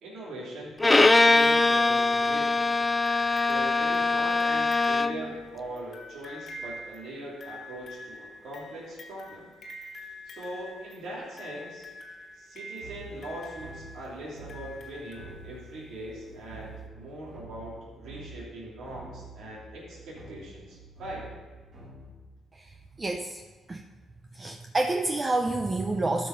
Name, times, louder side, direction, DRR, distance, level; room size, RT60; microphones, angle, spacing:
voice 1, 0.0-2.7 3.4-9.5 10.3-11.9 12.3-21.3, right 1 dB, 75° right, -6 dB, 3.0 m, -41 dB
Bowed string instrument, 0.8-5.3, left 3 dB, 20° left, 0.4 m, -22 dB
sound 1, 3.1-15.9 16.9-17.0, left 2 dB, 55° left, 1.6 m, -46 dB
sound 2, 12.8-22.3, right 3 dB, 45° right, 2.9 m, -47 dB
voice 2, 23.0-23.4 23.7-23.8 24.4-26.3, right 2 dB, 25° right, 3 dB, 0.6 m, -28 dB
13.0 x 5.5 x 5.2 m, 1.3 s
cardioid pair, 90°, 0 cm